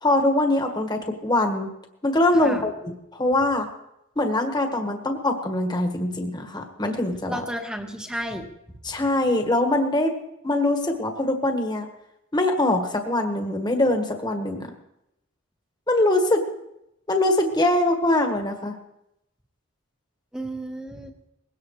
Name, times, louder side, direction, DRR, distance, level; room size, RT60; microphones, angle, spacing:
voice 1, 0.0-1.7 2.0-3.7 4.2-7.4 8.8-10.1 10.4-11.8 12.3-14.7 15.9-16.4 17.1-18.8, left 1 dB, 20° left, 4 dB, 1.5 m, -23 dB
voice 2, 7.3-8.5 20.3-21.1, right 1 dB, 5° right, 4 dB, 1.3 m, -32 dB
21.0 x 17.0 x 3.2 m, 0.85 s
head